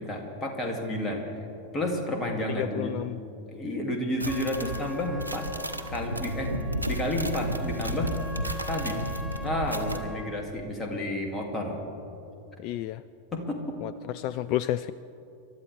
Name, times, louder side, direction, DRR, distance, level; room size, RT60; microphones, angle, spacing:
voice 1, 0.0-1.4 1.7-3.1 3.5-5.5 5.9-6.5 6.9-8.1 8.7-9.0 9.4-11.8 13.3-13.6, left 1 dB, 20° left, 1 dB, 2.6 m, -31 dB
voice 2, 2.5-3.2 12.6-13.0 13.8-14.9, left 13 dB, 45° left, 16 dB, 0.3 m, -31 dB
sound 1, 4.2-10.0, right 1 dB, 90° left, 1.0 m, -33 dB
Trumpet, 4.2-10.5, left 2 dB, ahead, 0.6 m, -43 dB
28.5 x 13.0 x 3.5 m, 2.8 s
figure-of-eight pair, 90°, 0 cm